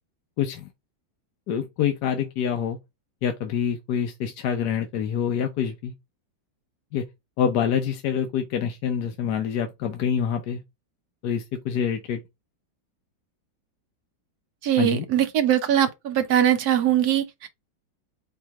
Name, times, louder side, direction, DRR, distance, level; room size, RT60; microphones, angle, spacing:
voice 1, 0.4-0.7 1.5-2.8 3.2-5.9 6.9-7.0 7.4-10.6 11.2-12.2 14.8-15.0, left 8 dB, 65° left, 1.1 m, -26 dB
voice 2, 14.6-17.5, right 10 dB, 65° right, 1.1 m, -21 dB
4.7 x 3.1 x 3.5 m
omnidirectional pair, 2.0 m